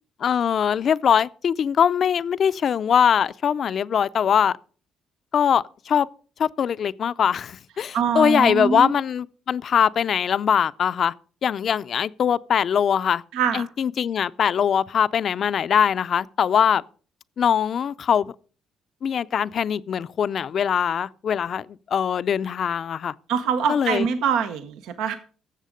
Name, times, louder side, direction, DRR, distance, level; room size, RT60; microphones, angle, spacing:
voice 1, 0.2-4.6 5.3-6.1 6.4-11.1 11.4-13.2 13.5-16.8 17.4-18.3 19.0-21.7 21.9-23.1 23.7-24.1, left 8 dB, 55° left, 0.4 m, -22 dB
voice 2, 7.9-8.9 13.3-13.6 23.3-25.2, right 7 dB, 85° right, 0.9 m, -24 dB
13.0 x 7.5 x 5.1 m
cardioid pair, 85°, 0 cm